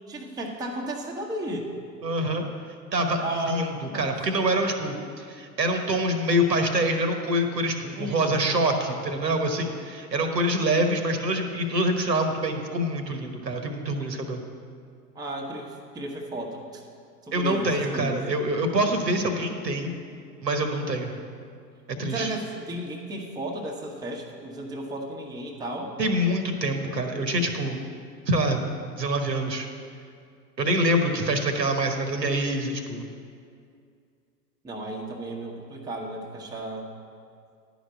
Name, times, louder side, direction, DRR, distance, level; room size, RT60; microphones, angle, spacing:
voice 1, 0.1-1.7 3.2-4.4 7.9-8.3 15.1-16.8 17.2-18.2 22.0-26.0 34.6-36.9, right 1 dB, 10° right, -1 dB, 1.0 m, -34 dB
voice 2, 2.0-2.5 2.9-14.4 17.3-19.9 20.4-21.2 21.9-22.3 26.0-27.8 28.3-28.6 29.0-29.7 30.6-33.1, right 1 dB, 80° right, 5 dB, 1.2 m, -25 dB
11.0 x 5.1 x 7.9 m, 2.3 s
figure-of-eight pair, 100°, 49 cm